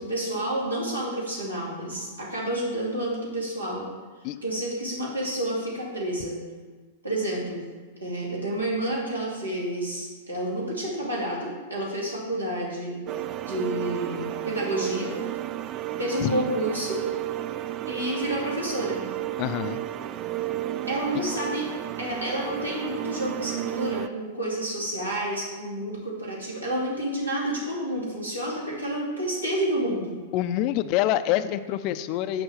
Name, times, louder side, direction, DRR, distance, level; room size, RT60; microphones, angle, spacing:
voice 1, 0.0-3.9 4.4-6.4 7.0-7.6 8.0-13.0 13.4-15.1 16.0-17.0 17.9-19.0 20.9-21.7 22.0-30.1, right 1 dB, 80° right, -5 dB, 2.7 m, -29 dB
sound 1, 13.1-24.1, right 13 dB, 30° right, 0.3 m, -32 dB
voice 2, 19.4-19.8 30.3-32.4, left 12 dB, 40° left, 12 dB, 0.4 m, -26 dB
6.9 x 5.5 x 6.8 m, 1.4 s
figure-of-eight pair, 100°, 0 cm